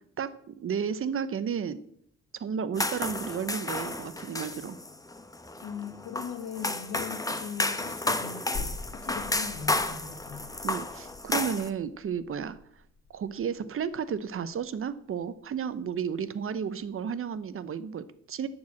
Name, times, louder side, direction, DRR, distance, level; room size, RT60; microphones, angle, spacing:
voice 1, 0.2-1.8 2.4-4.8 10.6-12.6 13.1-18.5, right 7 dB, 45° right, 14 dB, 0.8 m, -33 dB
sound 1, 2.8-11.7, left 2 dB, 10° left, 0.9 m, -32 dB
voice 2, 5.6-8.6 8.9-10.4, left 7 dB, 80° left, 8 dB, 1.5 m, -40 dB
sound 2, 8.5-15.8 16.2-16.3, left 3 dB, 40° left, 2.6 m, -45 dB
11.5 x 4.7 x 7.5 m, 0.70 s
cardioid pair, 90°, 30 cm